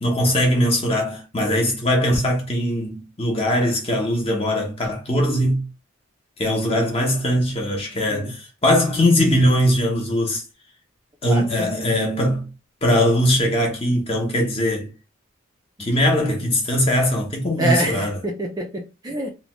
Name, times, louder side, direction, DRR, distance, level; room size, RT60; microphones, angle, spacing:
voice 1, 0.0-5.6 6.4-10.4 11.2-12.5 12.8-14.9 15.8-18.2, equal, 30° left, 0.8 m, -20 dB
voice 2, 11.2-11.7 15.8-15.9 17.6-19.3, right 1 dB, 20° right, 0.4 m, -26 dB
2.9 x 2.1 x 2.9 m
head